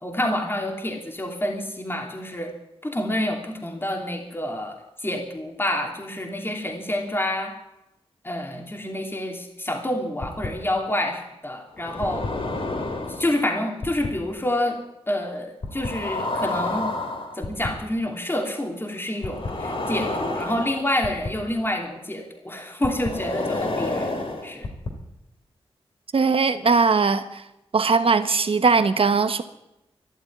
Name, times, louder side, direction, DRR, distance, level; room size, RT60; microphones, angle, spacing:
voice 1, 0.0-2.5 2.8-7.5 8.2-12.2 13.1-14.8 15.1-16.9 17.3-24.1 24.4-24.7, left 1 dB, 20° left, 1 dB, 3.1 m, -28 dB
sound 1, 10.2-10.5 11.8-13.3 13.8-14.1 15.6-17.7 19.2-21.3 22.8-24.9, left 2 dB, 60° left, 3.2 m, -29 dB
voice 2, 26.1-27.4 27.7-29.4, right 4 dB, 60° right, 10 dB, 1.3 m, -20 dB
13.0 x 11.5 x 9.6 m, 0.90 s
cardioid pair, 65°, 10 cm